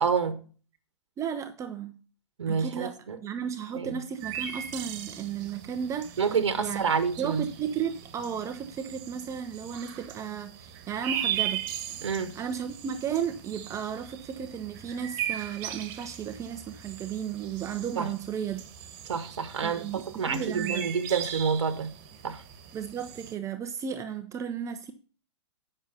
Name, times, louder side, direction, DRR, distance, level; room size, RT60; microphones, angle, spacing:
voice 1, 0.0-0.4 2.4-3.2 3.8-3.9 6.2-7.5 12.0-12.3 18.0-18.1 19.1-22.0 22.2-22.4, right 6 dB, 80° right, 1.1 m, -28 dB
voice 2, 1.2-1.9 2.5-2.9 3.2-6.8 7.2-11.6 12.3-18.6 19.6-20.9 22.7-24.9, right 8 dB, 20° right, 0.7 m, -34 dB
sound 1, 4.2-23.3, right 10 dB, 45° right, 1.5 m, -38 dB
9.1 x 6.2 x 5.5 m
hypercardioid pair, 125°, 15 cm